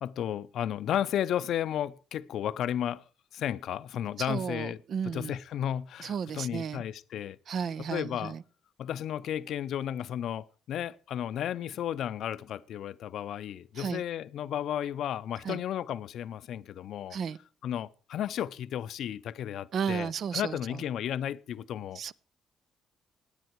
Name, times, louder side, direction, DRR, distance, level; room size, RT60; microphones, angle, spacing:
voice 1, 0.0-3.0 3.3-4.8 5.1-7.4 7.9-8.3 8.8-17.2 17.6-22.0, left 10 dB, 75° left, 0.5 m, -33 dB
voice 2, 4.2-5.4 6.0-6.8 7.5-8.4 13.8-14.0 15.4-15.6 17.1-17.4 19.7-20.8 21.9-22.1, right 7 dB, 60° right, 0.5 m, -34 dB
17.5 x 9.6 x 4.6 m
cardioid pair, 90°, 0 cm